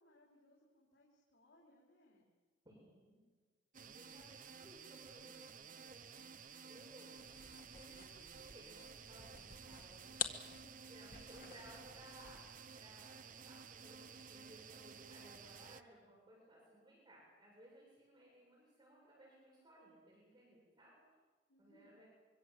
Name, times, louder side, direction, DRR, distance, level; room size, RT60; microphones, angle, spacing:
voice 1, 0.0-2.3 21.5-21.9, left 1 dB, 85° left, -3 dB, 4.8 m, -69 dB
voice 2, 2.6-3.3 3.7-6.3 6.6-7.1 7.7-10.2 10.8-20.9 21.6-22.1, right 1 dB, 25° right, -3 dB, 7.7 m, -61 dB
sound 1, 3.7-15.8, right 6 dB, 45° right, 1.1 m, -54 dB
sound 2, 7.2-12.6, left 7 dB, 50° left, 1.7 m, -48 dB
25.0 x 24.0 x 8.0 m, 1.4 s
head